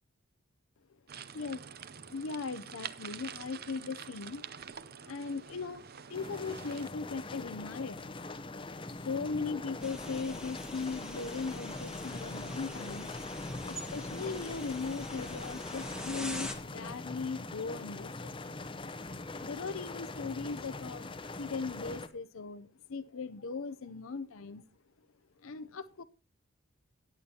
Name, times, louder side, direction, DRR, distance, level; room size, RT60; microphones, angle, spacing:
sound 1, 1.1-6.9, right 7 dB, 45° right, 0.6 m, -47 dB
voice 1, 2.1-4.5 4.8-8.2 8.9-13.1 13.6-18.3 19.3-21.1 21.4-24.6 25.4-26.0, left 4 dB, 65° left, 11 dB, 0.6 m, -39 dB
sound 2, 6.1-22.1, left 2 dB, 25° left, 0.8 m, -42 dB
sound 3, 9.8-16.6, left 1 dB, 5° right, 1.3 m, -44 dB
17.5 x 8.6 x 2.8 m, 0.32 s
head